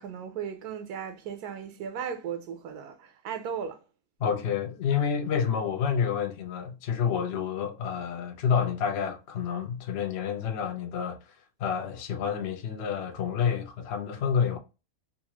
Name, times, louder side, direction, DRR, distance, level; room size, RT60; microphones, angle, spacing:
voice 1, 0.0-3.8, right 7 dB, 85° right, 1.1 m, -36 dB
voice 2, 4.2-14.6, left 7 dB, 55° left, 0.7 m, -29 dB
3.9 x 2.4 x 2.8 m
omnidirectional pair, 1.6 m